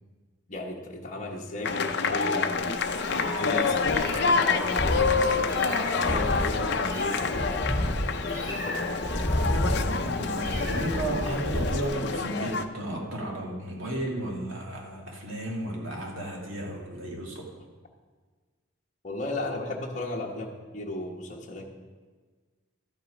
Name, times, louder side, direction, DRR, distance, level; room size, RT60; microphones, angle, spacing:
voice 1, 0.5-2.8 3.1-7.7 8.2-9.4 19.0-21.7, left 1 dB, 35° left, -2 dB, 1.1 m, -35 dB
sound 1, 1.6-12.7, left 4 dB, 55° left, 0.6 m, -27 dB
Meow, 2.6-11.9, equal, 15° right, 2.7 m, -31 dB
voice 2, 10.0-17.5, right 1 dB, 80° right, -1 dB, 2.2 m, -34 dB
12.5 x 7.8 x 5.1 m, 1.4 s
head